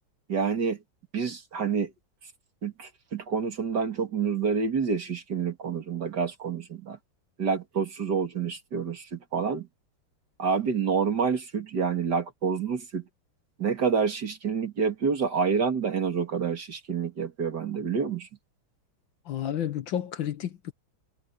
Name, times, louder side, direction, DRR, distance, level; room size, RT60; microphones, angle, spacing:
voice 1, 0.3-0.8 1.1-1.9 2.6-7.0 7.4-9.7 10.4-13.0 13.6-18.3, right 5 dB, 50° right, 2.8 m, -28 dB
voice 2, 19.2-20.7, left 10 dB, 65° left, 1.7 m, -31 dB
omnidirectional pair, 2.3 m